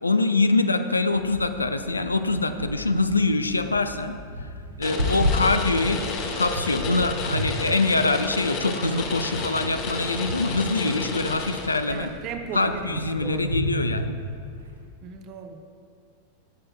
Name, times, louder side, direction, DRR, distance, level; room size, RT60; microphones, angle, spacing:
voice 1, 0.0-4.2 4.8-6.0 6.4-12.1 12.5-14.2, left 3 dB, 80° left, 9 dB, 0.4 m, -24 dB
sound 1, 1.1-14.9, equal, 75° right, 0.8 m, -33 dB
sound 2, 4.8-12.1, left 4 dB, 40° left, 1.1 m, -32 dB
voice 2, 11.9-13.5 15.0-15.6, right 5 dB, 35° right, 6 dB, 0.7 m, -37 dB
13.0 x 7.6 x 2.2 m, 2.2 s
figure-of-eight pair, 90°, 0 cm